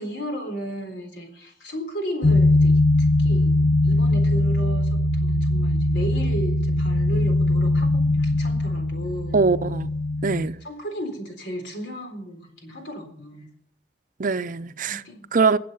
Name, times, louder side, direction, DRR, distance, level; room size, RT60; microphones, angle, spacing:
voice 1, 0.0-9.4 10.6-13.5 14.8-15.3, equal, 80° left, 3.9 m, -35 dB
sound 1, 2.2-10.5, left 1 dB, 55° left, 1.2 m, -21 dB
voice 2, 9.3-9.9 10.2-10.6 14.2-15.0 15.3-15.6, right 4 dB, 50° right, 0.6 m, -22 dB
21.5 x 7.6 x 5.6 m
head